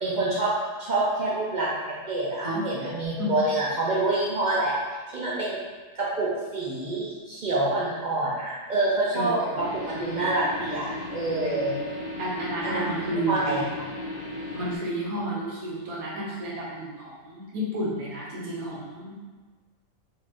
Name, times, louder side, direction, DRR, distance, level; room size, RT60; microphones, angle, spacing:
voice 1, 0.0-0.5 0.8-4.8 5.1-5.6 5.9-9.4 9.7-11.8 12.6-12.9 13.3-13.7, right 2 dB, 60° right, -6 dB, 0.4 m, -27 dB
voice 2, 9.1-9.6 11.4-11.8 12.2-13.5 14.5-19.1, right 1 dB, 35° right, -6 dB, 0.8 m, -31 dB
sound 1, 9.6-14.8, left 2 dB, 60° left, 0.6 m, -36 dB
2.7 x 2.5 x 3.3 m, 1.4 s
omnidirectional pair, 1.4 m